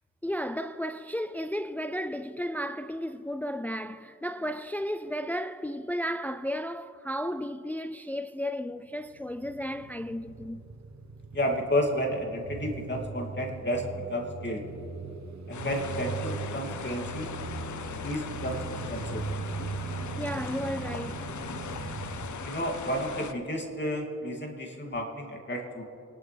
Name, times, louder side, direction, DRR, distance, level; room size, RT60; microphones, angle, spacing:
voice 1, 0.2-10.6 20.2-21.3, equal, 5° left, 0.4 m, -33 dB
sound 1, 8.9-23.2, right 4 dB, 70° right, 1.2 m, -39 dB
voice 2, 11.3-14.6 15.5-17.3 18.0-18.6 18.9-19.2 22.3-25.8, equal, 40° left, 2.7 m, -31 dB
sound 2, 15.5-23.3, left 7 dB, 80° left, 0.8 m, -39 dB
27.0 x 12.0 x 3.4 m
cardioid pair, 55°, 29 cm